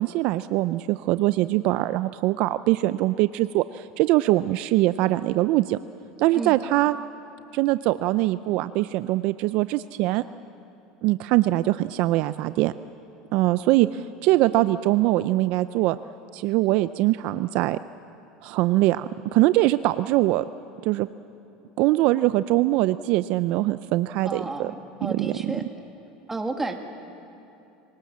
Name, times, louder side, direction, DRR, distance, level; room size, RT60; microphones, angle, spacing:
voice 1, 0.0-5.8 6.2-7.0 7.5-10.2 11.0-12.7 13.3-16.0 16.3-17.8 18.4-20.4 20.8-21.1 21.8-24.7 25.0-25.5, right 17 dB, 60° right, 14 dB, 0.4 m, -22 dB
voice 2, 24.2-25.6 26.3-26.7, right 3 dB, 15° right, 4 dB, 2.1 m, -31 dB
26.0 x 18.5 x 7.4 m, 2.9 s
supercardioid pair, 115°, 2 cm